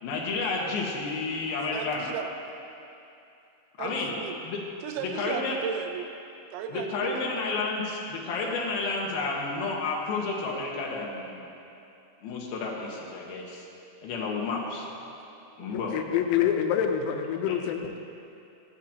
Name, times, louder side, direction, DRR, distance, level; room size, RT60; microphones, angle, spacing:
voice 1, 0.0-2.1 3.8-4.1 4.4-4.6 5.2-5.5 6.7-11.5 12.2-13.7 14.0-14.9 15.6-15.9 17.5-17.6, left 3 dB, 70° left, -2 dB, 2.4 m, -31 dB
voice 2, 1.7-2.3 3.8-4.4 4.8-6.1 6.5-7.4 14.2-15.3 15.6-16.5 17.3-17.6, right 8 dB, 85° right, 6 dB, 3.4 m, -38 dB
voice 3, 15.7-18.0, left 9 dB, 90° left, 5 dB, 3.5 m, -26 dB
17.5 x 13.0 x 2.9 m, 2.7 s
omnidirectional pair, 6.0 m